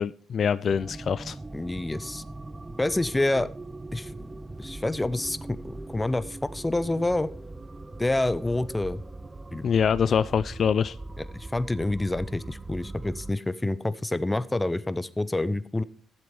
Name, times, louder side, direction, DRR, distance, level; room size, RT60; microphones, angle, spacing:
voice 1, 0.0-1.4 9.6-11.0, left 7 dB, 55° left, 16 dB, 0.4 m, -24 dB
sound 1, 0.7-13.3, right 2 dB, 20° right, 0.6 m, -40 dB
voice 2, 1.5-2.2 2.8-3.5 3.9-4.3 4.6-7.3 8.0-9.0 9.5-9.7 11.3-15.8, left 2 dB, 15° left, 15 dB, 0.7 m, -27 dB
12.0 x 7.8 x 5.3 m, 0.43 s
cardioid pair, 90°, 0 cm